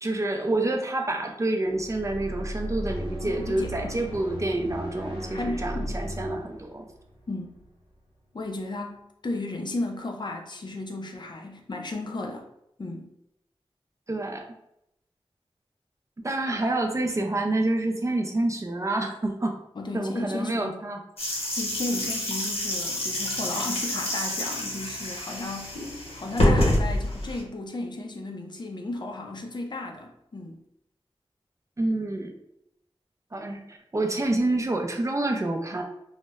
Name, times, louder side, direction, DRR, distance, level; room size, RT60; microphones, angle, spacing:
voice 1, 0.0-6.9 14.1-14.5 16.2-19.6 19.9-21.0 31.8-32.3 33.3-35.8, right 2 dB, 30° right, 3 dB, 0.4 m, -28 dB
sound 1, 1.7-8.0, equal, 60° right, 0.7 m, -36 dB
voice 2, 3.2-4.1 5.3-6.0 7.3-7.6 8.3-12.5 12.8-13.1 19.8-20.7 21.3-25.8 26.1-30.6, left 2 dB, 50° left, 2 dB, 0.4 m, -34 dB
sound 2, 21.2-27.4, left 1 dB, 80° left, 0.7 m, -27 dB
2.0 x 2.0 x 3.4 m, 0.79 s
wide cardioid pair, 75°, 10 cm